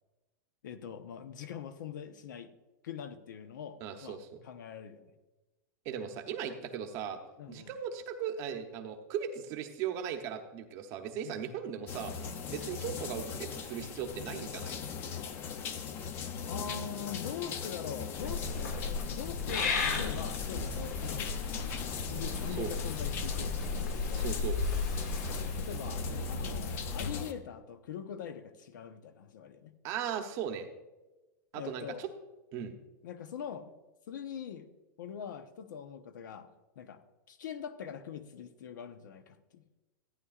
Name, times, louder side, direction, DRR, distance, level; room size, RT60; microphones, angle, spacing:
voice 1, 0.6-2.5 2.8-4.2 4.4-5.1 7.4-7.7 11.2-11.5 16.4-21.3 22.1-23.6 23.9-24.3 25.4-29.7 31.5-32.1 32.6-32.7 33.0-33.7 34.1-34.7 35.0-36.5 36.8-37.0 37.3-39.6, left 8 dB, 75° left, 10 dB, 0.9 m, -43 dB
voice 2, 3.8-4.4 5.8-7.2 7.5-14.7 22.6-22.7 24.1-24.6 29.8-30.7 31.5-32.1 32.5-32.7, right 8 dB, 30° right, 6 dB, 0.8 m, -38 dB
sound 1, 11.9-27.3, left 6 dB, 20° left, 0.5 m, -40 dB
Purr / Meow, 18.2-27.1, left 4 dB, 60° left, 1.9 m, -35 dB
14.5 x 9.5 x 2.4 m, 1.1 s
supercardioid pair, 170°, 10 cm